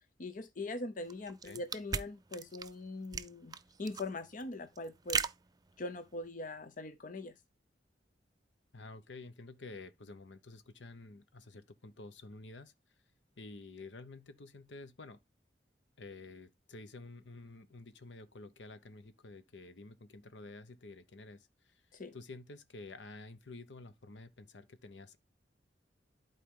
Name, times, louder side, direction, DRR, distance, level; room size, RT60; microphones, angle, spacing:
voice 1, 0.2-5.2 5.8-7.3 21.9-22.2, left 2 dB, 50° left, 0.7 m, -42 dB
sound 1, 1.1-6.3, right 6 dB, 20° right, 0.4 m, -39 dB
voice 2, 8.7-12.7 13.4-15.2 16.0-21.8 22.1-25.2, left 3 dB, 85° left, 0.9 m, -50 dB
11.5 x 4.5 x 3.7 m
head